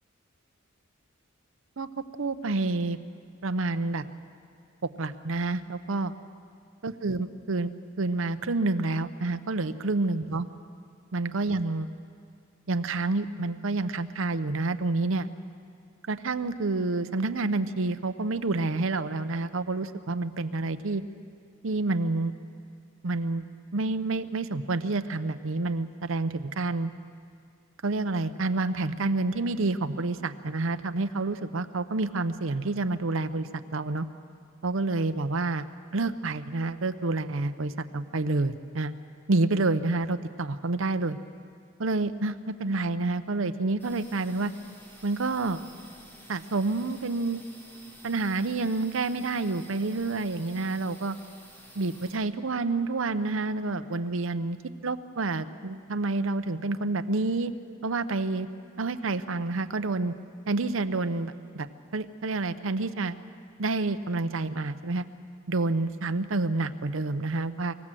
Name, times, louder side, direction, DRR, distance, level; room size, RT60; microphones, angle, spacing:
voice 1, 2.2-3.0 3.4-4.0 4.8-6.1 6.8-7.7 8.0-10.5 11.1-11.9 12.7-15.3 16.1-21.0 21.6-22.3 23.0-23.4 23.7-26.9 27.8-34.1 34.6-35.7 35.9-38.9 39.3-41.2 41.8-44.5 45.0-45.6 46.3-47.4 48.0-51.2 51.8-54.6 54.8-57.5 57.8-58.5 58.8-60.1 60.5-61.7 61.9-63.2 63.6-65.0 65.5-67.7, right 3 dB, 70° right, 10 dB, 0.8 m, -28 dB
sound 1, 43.8-52.2, equal, 10° left, 3.1 m, -51 dB
25.0 x 16.0 x 7.6 m, 2.3 s
head